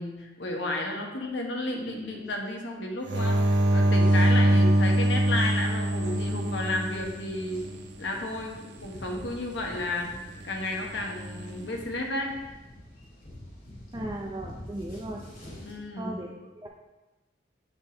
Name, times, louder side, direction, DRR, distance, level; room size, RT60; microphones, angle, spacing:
voice 1, 0.0-7.6 8.0-12.3 15.6-16.2, left 2 dB, 75° left, 1 dB, 1.1 m, -32 dB
sound 1, 3.1-7.7 11.0-11.5, right 1 dB, 65° right, 0.7 m, -23 dB
sound 2, 3.5-15.8, equal, 50° left, 1.8 m, -47 dB
voice 2, 13.9-15.2 15.9-16.7, right 1 dB, 20° right, -1 dB, 0.5 m, -37 dB
8.1 x 3.6 x 3.8 m, 1.1 s
head